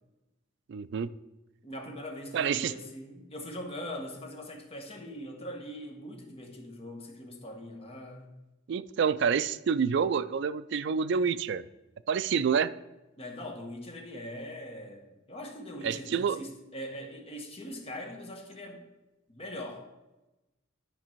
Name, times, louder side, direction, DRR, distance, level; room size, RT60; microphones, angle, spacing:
voice 1, 0.7-1.1 2.3-2.7 8.7-11.6 12.1-12.7 15.8-16.4, right 6 dB, 60° right, 14 dB, 0.3 m, -28 dB
voice 2, 1.6-8.3 13.2-18.8 19.3-19.9, equal, 30° left, 2 dB, 1.2 m, -41 dB
10.0 x 5.1 x 4.5 m, 1.0 s
head